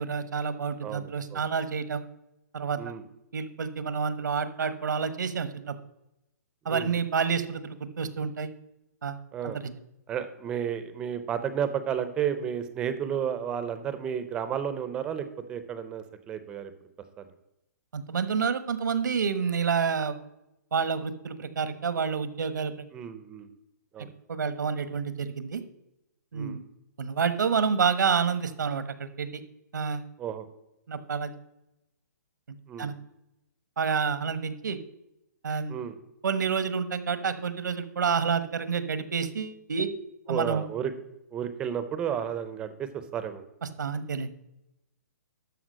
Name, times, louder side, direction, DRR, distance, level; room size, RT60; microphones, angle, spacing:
voice 1, 0.0-2.0 2.5-2.8 3.3-5.7 6.6-8.5 9.0-9.2 9.4-9.7 17.9-20.2 20.7-22.7 24.3-25.6 26.3-26.6 27.0-29.4 29.7-30.0 30.9-31.3 32.8-32.9 33.8-34.8 35.4-35.7 36.2-39.9 40.3-40.7 43.8-44.3, right 6 dB, 90° right, 12 dB, 1.2 m, -28 dB
voice 2, 0.8-1.4 2.8-3.0 6.7-7.0 9.3-9.6 10.1-16.7 17.2-17.3 22.9-23.5 23.9-24.1 26.3-26.6 30.2-30.5 32.7-32.9 35.7-36.0 40.3-40.9 41.3-43.4, right 8 dB, 10° right, 11 dB, 0.5 m, -32 dB
12.0 x 4.8 x 6.3 m, 0.87 s
hypercardioid pair, 175°, 10 cm